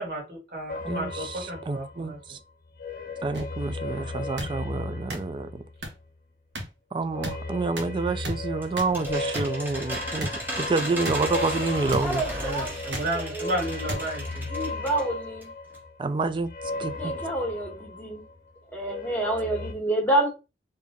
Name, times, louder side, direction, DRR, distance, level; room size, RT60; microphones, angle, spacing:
voice 1, 0.0-2.2 12.3-14.5, right 1 dB, 55° right, 1.9 m, -32 dB
sound 1, 0.7-2.3 2.6-6.2 7.0-18.4 18.7-19.7, left 3 dB, 50° left, 0.7 m, -36 dB
voice 2, 0.8-2.4 3.2-5.6 6.9-10.3 10.6-12.2 16.0-16.5 16.8-17.1, right 3 dB, 30° right, 0.3 m, -28 dB
sound 2, 3.3-3.4 4.4-4.5 5.1-5.2 5.8-5.9 6.5-6.6 7.2-7.3 7.8-7.9 8.2-8.4 8.8-8.9 9.3-9.5 10.2-10.3 11.0-11.2 11.9-12.0 12.9-13.1 13.9-14.0 14.8-15.0, equal, 80° right, 1.0 m, -32 dB
sound 3, 8.2-15.1 15.4-15.5 15.7-15.8, right 1 dB, 10° right, 1.1 m, -36 dB
voice 3, 12.0-13.5 14.5-15.5 16.9-18.2 18.7-20.3, right 1 dB, 10° left, 1.2 m, -28 dB
3.6 x 2.7 x 3.6 m
head